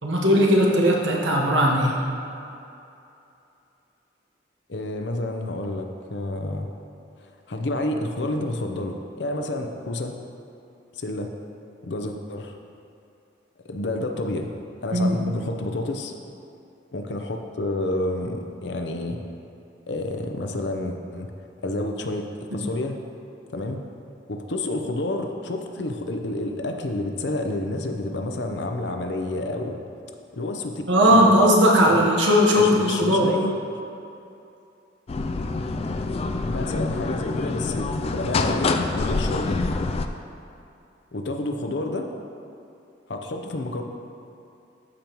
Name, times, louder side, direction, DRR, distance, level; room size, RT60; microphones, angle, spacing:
voice 1, 0.0-2.0 14.9-15.2 30.9-33.3, equal, 85° right, -2 dB, 1.2 m, -18 dB
voice 2, 4.7-6.7 7.2-10.2 11.0-11.3 11.8-12.6 13.6-14.5 14.8-16.1 16.9-19.2 19.9-21.3 21.6-23.0 23.5-23.8 24.3-29.8 30.3-31.3 31.9-32.1 32.5-33.6 36.4-39.6 41.1-42.1 43.1-43.8, left 2 dB, 70° left, 4 dB, 0.7 m, -29 dB
sound 1, 35.1-40.1, left 3 dB, 35° left, 0.3 m, -26 dB
13.5 x 5.2 x 3.0 m, 2.7 s
head